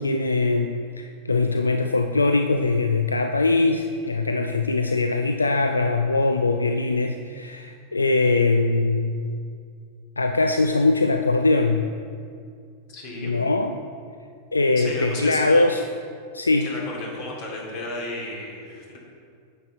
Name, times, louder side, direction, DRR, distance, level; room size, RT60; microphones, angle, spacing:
voice 1, 0.0-9.2 10.2-11.9 13.2-13.8 14.5-15.8 16.3-16.7, left 3 dB, 80° left, 6 dB, 0.3 m, -22 dB
voice 2, 12.9-13.4 14.8-15.7 16.6-19.0, left 2 dB, 45° left, -2 dB, 2.4 m, -33 dB
9.3 x 7.8 x 4.0 m, 2.3 s
figure-of-eight pair, 90°, 0 cm